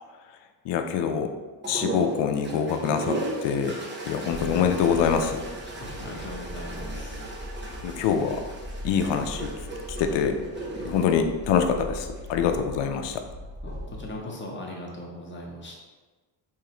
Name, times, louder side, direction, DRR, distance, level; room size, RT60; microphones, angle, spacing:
voice 1, 0.6-1.3 1.7-3.8 4.0-5.4 7.8-8.4 8.8-9.5 10.0-10.4 10.8-13.2, left 7 dB, 70° left, 6 dB, 0.5 m, -25 dB
sound 1, 1.6-12.3 13.5-14.1, right 2 dB, 25° right, 0.9 m, -37 dB
sound 2, 4.3-14.2, equal, 40° right, 1.4 m, -40 dB
voice 2, 5.8-7.3 13.6-15.8, left 1 dB, 25° left, -2 dB, 1.0 m, -39 dB
3.6 x 3.2 x 2.9 m, 1.3 s
cardioid pair, 80°, 44 cm